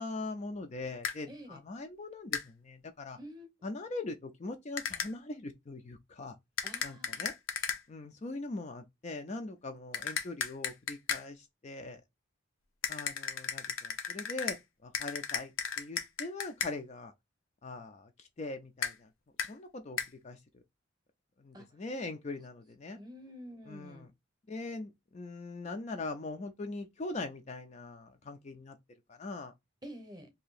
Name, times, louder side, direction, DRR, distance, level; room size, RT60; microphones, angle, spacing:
voice 1, 0.0-3.2 3.6-6.4 6.8-7.3 7.9-12.0 12.9-14.6 14.8-15.5 15.8-17.1 17.6-19.1 19.5-20.0 20.2-20.6 21.4-23.0 23.7-24.1 24.5-28.8 29.1-29.5, left 2 dB, 35° left, 0.4 m, -41 dB
sound 1, 1.0-1.2 2.3-2.5 4.8-5.1 6.6-7.8 9.9-11.3 12.8-14.6 14.9-16.7 18.8-18.9 19.4-19.5 20.0-20.1, left 7 dB, 85° left, 0.7 m, -35 dB
voice 2, 1.3-1.6 3.2-3.5 6.6-7.3 21.5-21.7 23.0-24.1 29.8-30.3, equal, 20° right, 0.8 m, -48 dB
2.7 x 2.7 x 4.0 m
head